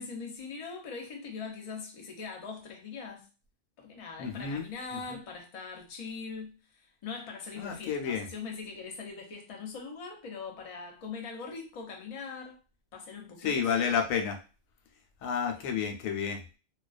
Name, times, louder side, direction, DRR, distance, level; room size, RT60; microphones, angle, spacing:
voice 1, 0.0-3.3 3.8-12.6 12.9-13.7, left 5 dB, 45° left, 0.5 m, -41 dB
voice 2, 4.2-4.6 5.1-5.2 7.6-8.3 13.4-14.4 15.2-16.4, left 7 dB, 90° left, 1.0 m, -30 dB
2.4 x 2.2 x 2.3 m
omnidirectional pair, 1.4 m